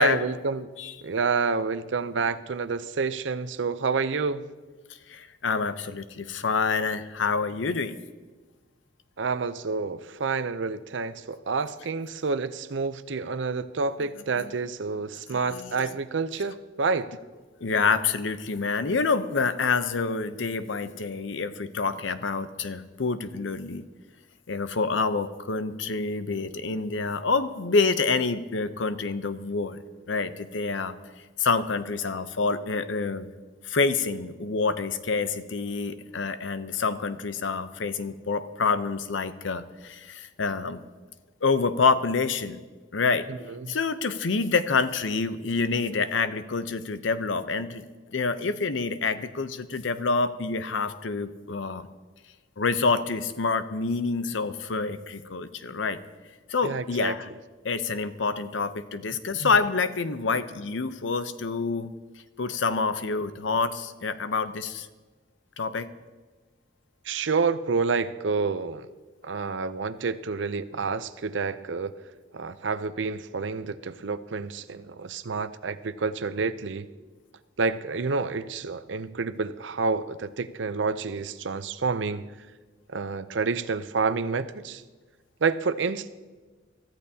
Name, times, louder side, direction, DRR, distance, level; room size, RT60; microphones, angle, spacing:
voice 1, 0.0-0.7 1.0-4.5 9.2-17.2 43.3-43.7 56.6-57.1 59.4-59.5 67.0-68.9 69.2-71.9 72.3-76.9 77.6-82.3 82.9-84.8 85.4-86.1, right 4 dB, 75° right, 13 dB, 0.6 m, -28 dB
voice 2, 5.1-8.0 14.4-14.5 15.3-15.8 17.6-23.8 24.5-29.8 30.1-30.9 31.4-33.3 33.6-40.8 41.4-42.6 42.9-43.3 43.7-51.9 52.6-56.0 56.5-57.3 57.6-61.9 62.4-64.9 65.6-65.9, left 4 dB, 85° left, 11 dB, 0.7 m, -27 dB
23.5 x 14.0 x 2.8 m, 1.3 s
head